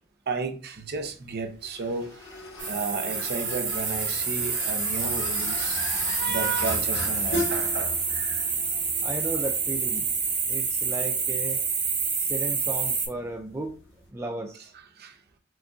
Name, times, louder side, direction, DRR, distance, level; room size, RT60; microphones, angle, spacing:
voice 1, 0.3-2.4 2.6-5.8 6.2-8.5 15.0-15.2, right 4 dB, 50° right, 0.6 m, -33 dB
sound 1, 0.7-14.1, left 1 dB, 60° left, 1.2 m, -39 dB
sound 2, 2.6-13.1, right 5 dB, 85° right, 2.1 m, -28 dB
voice 2, 9.0-10.1 10.5-11.6 12.2-13.8 14.1-14.7, right 2 dB, 15° right, 0.3 m, -34 dB
5.9 x 2.5 x 2.4 m
head